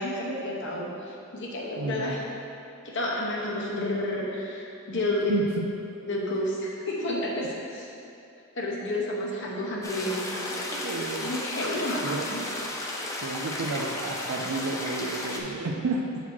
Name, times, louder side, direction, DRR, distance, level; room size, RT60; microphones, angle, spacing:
voice 1, 0.0-2.2 2.8-5.3 6.1-7.9 8.6-10.6 11.2-12.4, left 1 dB, 55° left, -3 dB, 0.9 m, -30 dB
voice 2, 1.8-2.2 5.3-5.7 7.4-7.6 10.7-11.3 12.0-12.3 13.2-16.0, right 3 dB, 70° right, 0 dB, 0.4 m, -31 dB
sound 1, 9.8-15.4, left 1 dB, 15° left, 0.5 m, -34 dB
7.2 x 4.1 x 4.5 m, 2.6 s
head